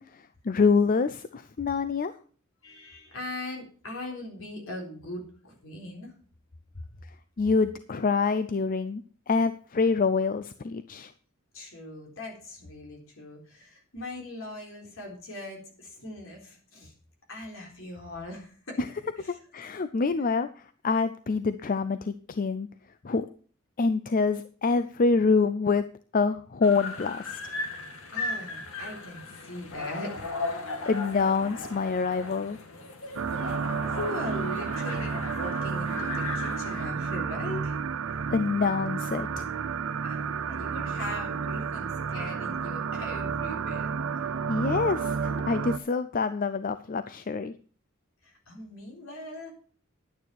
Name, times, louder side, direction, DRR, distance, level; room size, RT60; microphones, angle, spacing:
voice 1, 0.0-2.1 7.4-9.0 9.3-11.1 18.8-18.9 19.5-22.7 23.0-23.3 23.8-25.8 26.1-27.4 30.9-32.6 38.3-39.5 44.5-47.5, left 4 dB, 40° left, 12 dB, 0.5 m, -26 dB
voice 2, 2.6-6.1 11.5-16.9 17.3-18.8 19.2-19.4 28.1-30.6 33.3-33.4 33.9-37.8 40.0-43.9 48.2-49.5, left 1 dB, 70° left, 1 dB, 4.0 m, -40 dB
sound 1, 26.6-36.9, left 3 dB, 85° left, 2.2 m, -37 dB
sound 2, 33.2-45.8, right 6 dB, 80° right, 0.5 m, -31 dB
11.0 x 9.5 x 4.6 m, 0.42 s
head